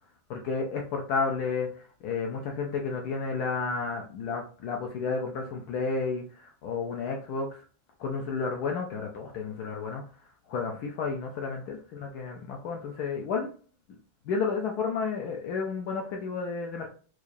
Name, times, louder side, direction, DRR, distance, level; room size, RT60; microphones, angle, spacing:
voice 1, 0.3-7.6 8.0-10.0 10.5-13.5 14.3-16.9, left 4 dB, 90° left, 1 dB, 0.8 m, -31 dB
4.7 x 2.4 x 2.5 m, 0.41 s
omnidirectional pair, 2.2 m